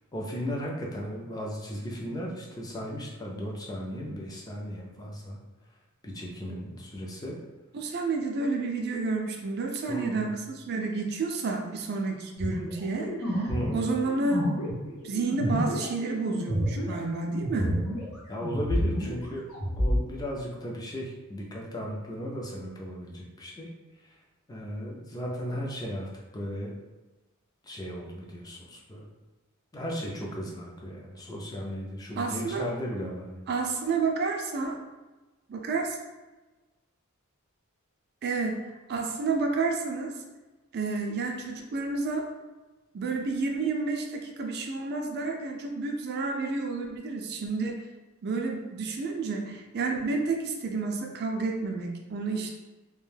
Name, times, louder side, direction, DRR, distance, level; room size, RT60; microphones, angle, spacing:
voice 1, 0.1-5.4 6.0-7.4 9.9-10.3 13.5-13.9 18.3-19.5 19.8-23.7 24.0-24.1 24.5-26.8 27.6-29.1 29.7-33.5, equal, 15° left, -2 dB, 0.4 m, -36 dB
voice 2, 7.7-14.5 15.0-17.8 32.2-32.7 33.5-34.8 35.5-36.0 38.2-38.6 38.9-40.1 40.7-42.3 42.9-47.8 48.2-52.5, right 3 dB, 50° right, 2 dB, 0.4 m, -30 dB
sound 1, 12.4-18.1 18.4-20.0, equal, 80° left, 0.8 m, -29 dB
2.4 x 2.2 x 3.2 m, 1.2 s
head